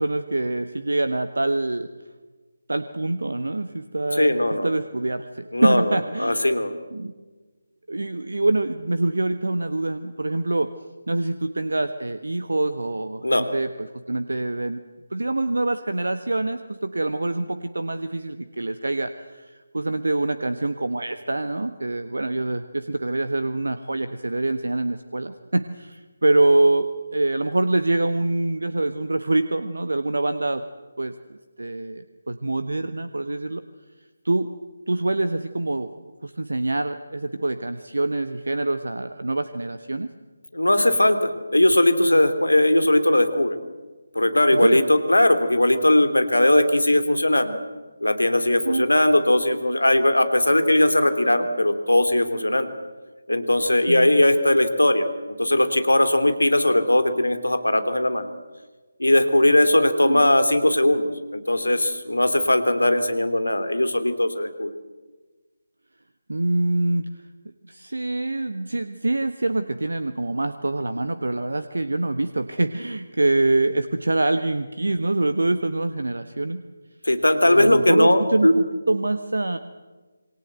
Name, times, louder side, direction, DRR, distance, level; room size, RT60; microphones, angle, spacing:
voice 1, 0.0-1.9 2.7-4.4 4.6-6.5 6.9-7.1 7.9-10.7 11.1-14.8 15.1-30.6 31.0-33.6 34.2-34.5 34.9-35.9 36.2-40.1 44.5-44.8 48.6-48.8 53.9-54.2 60.0-60.3 66.3-67.1 67.7-76.6 77.4-79.6, right 2 dB, 65° right, 10 dB, 1.3 m, -25 dB
voice 2, 4.1-4.7 5.5-6.7 13.2-13.5 40.5-43.6 44.1-47.6 48.0-52.7 53.3-55.1 55.4-58.3 59.0-64.7 77.0-78.5, left 1 dB, 75° left, 9 dB, 3.1 m, -19 dB
27.5 x 24.0 x 8.0 m, 1.3 s
figure-of-eight pair, 155°, 0 cm